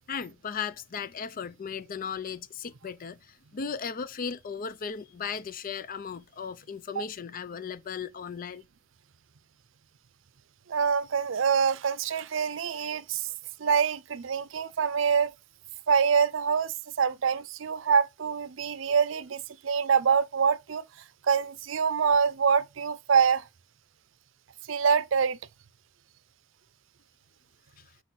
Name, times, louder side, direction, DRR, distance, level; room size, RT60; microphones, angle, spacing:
voice 1, 0.1-8.7, left 6 dB, 45° left, 0.5 m, -36 dB
voice 2, 10.7-13.3 13.6-15.3 15.9-20.8 21.3-23.4 24.7-25.4, right 6 dB, 75° right, 0.5 m, -25 dB
6.1 x 4.9 x 4.0 m
head